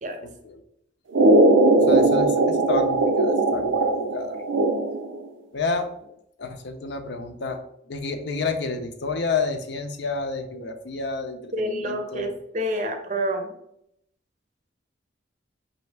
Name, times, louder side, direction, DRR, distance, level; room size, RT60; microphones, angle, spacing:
voice 1, 0.2-0.6 1.9-4.4 5.5-5.9 6.4-7.6 7.9-12.3, left 4 dB, 60° left, 7 dB, 0.5 m, -30 dB
sound 1, 1.1-5.2, right 2 dB, 85° right, 0.5 m, -19 dB
voice 2, 11.5-13.5, equal, 40° right, 5 dB, 0.6 m, -28 dB
5.3 x 2.7 x 3.2 m, 0.74 s
head